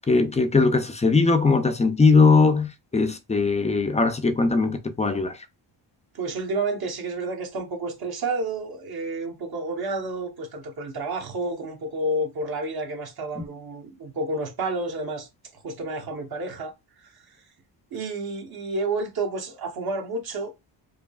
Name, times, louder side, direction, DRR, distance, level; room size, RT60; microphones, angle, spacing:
voice 1, 0.1-5.4, left 4 dB, 15° left, 0.3 m, -20 dB
voice 2, 6.1-17.4 17.9-20.5, right 2 dB, 50° right, 1.1 m, -30 dB
4.7 x 2.7 x 2.3 m
wide cardioid pair, 155°, 46 cm